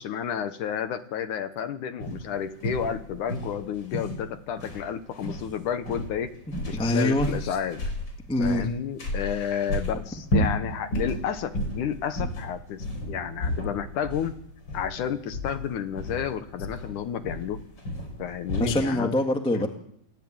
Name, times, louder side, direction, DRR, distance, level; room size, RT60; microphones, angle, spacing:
voice 1, 0.0-6.3 6.7-7.8 8.4-14.4 14.7-17.6 18.2-19.1 19.5-19.7, left 8 dB, 65° left, 10 dB, 2.3 m, -31 dB
sound 1, 2.0-18.8, equal, 30° left, 5.0 m, -33 dB
voice 2, 6.7-7.6 8.3-8.7 9.2-9.7 18.6-19.7, left 1 dB, 5° left, 4 dB, 0.8 m, -25 dB
28.5 x 17.0 x 8.9 m, 0.74 s
omnidirectional pair, 4.2 m